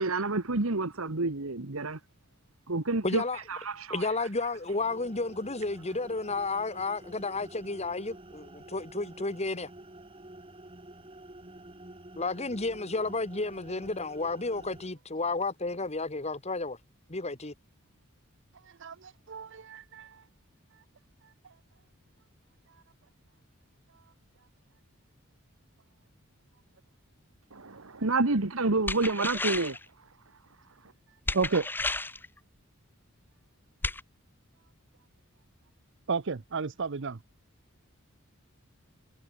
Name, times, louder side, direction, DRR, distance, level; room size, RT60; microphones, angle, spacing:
voice 1, 0.0-2.0 2.7-3.2 3.5-4.0 27.5-29.8, right 3 dB, 80° right, 1.7 m, -29 dB
voice 2, 3.0-3.4 3.9-9.7 12.2-16.8 17.1-17.5, left 3 dB, 30° left, 2.1 m, -32 dB
sound 1, 4.5-14.9, right 1 dB, 25° right, 3.2 m, -49 dB
voice 3, 18.8-20.2 31.3-31.7 36.1-37.2, right 4 dB, 60° right, 0.7 m, -31 dB
sound 2, 28.9-29.8 31.3-32.3 33.8-34.0, left 2 dB, 10° left, 0.7 m, -32 dB
head